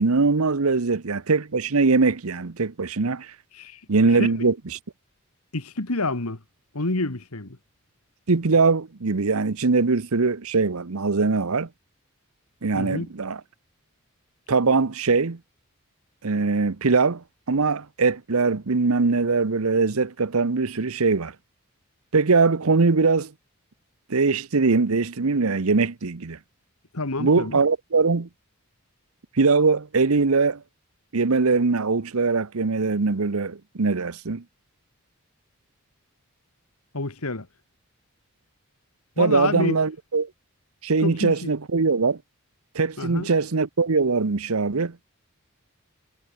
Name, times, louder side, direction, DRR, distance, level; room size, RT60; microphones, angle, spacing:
voice 1, 0.0-3.3 3.9-4.5 8.3-11.7 12.6-13.4 14.5-15.4 16.2-21.3 22.1-23.3 24.1-26.4 27.2-28.3 29.4-30.6 31.1-34.4 39.2-40.3 40.8-42.2 42.7-45.0, right 4 dB, 75° right, 0.9 m, -22 dB
voice 2, 5.5-6.4 6.7-7.6 12.8-13.1 26.9-27.6 36.9-37.5 39.2-39.8 41.0-41.5 43.0-43.3, left 2 dB, 80° left, 2.0 m, -28 dB
head